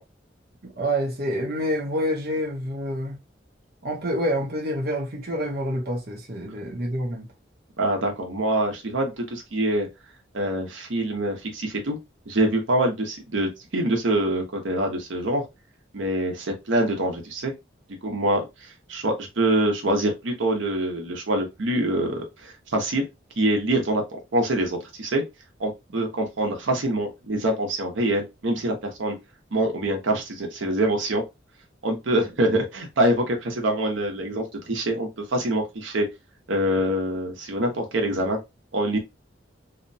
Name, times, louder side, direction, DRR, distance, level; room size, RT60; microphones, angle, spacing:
voice 1, 0.6-3.2 3.8-7.3, equal, 50° right, 0.7 m, -27 dB
voice 2, 7.8-9.9 10.3-12.0 12.3-15.4 15.9-17.5 18.0-23.1 23.4-24.0 24.3-25.2 25.6-29.2 29.5-31.2 31.8-36.1 36.5-38.4 38.7-39.0, right 1 dB, 85° right, 0.7 m, -25 dB
2.8 x 2.1 x 2.6 m
head